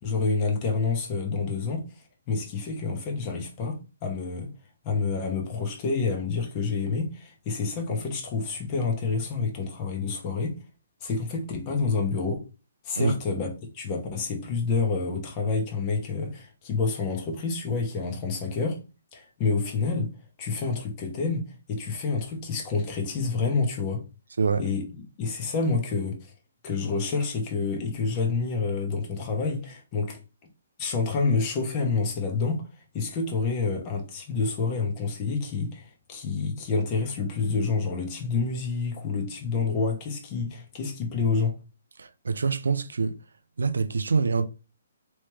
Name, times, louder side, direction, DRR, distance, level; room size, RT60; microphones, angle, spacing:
voice 1, 0.0-1.9 2.3-4.5 4.8-10.6 11.0-12.4 12.8-18.8 19.1-20.1 20.4-24.0 24.6-26.3 26.6-30.2 30.8-32.6 32.9-41.5, left 4 dB, 30° left, 1.0 m, -28 dB
voice 2, 24.4-24.7 42.0-43.2 43.6-44.5, right 4 dB, 85° right, 0.4 m, -25 dB
3.1 x 3.1 x 3.3 m
hypercardioid pair, 150°, 0 cm